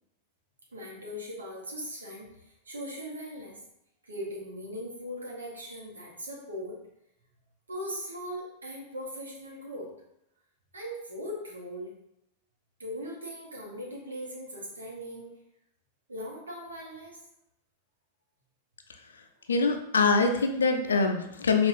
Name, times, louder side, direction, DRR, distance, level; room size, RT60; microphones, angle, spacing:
voice 1, 0.7-3.6 4.0-6.7 7.7-9.9 10.7-11.9 12.8-15.3 16.1-17.2, equal, 75° right, -3 dB, 0.8 m, -39 dB
voice 2, 19.5-21.7, left 4 dB, 70° left, 6 dB, 0.4 m, -24 dB
5.4 x 2.3 x 2.5 m, 0.80 s
figure-of-eight pair, 90°, 0 cm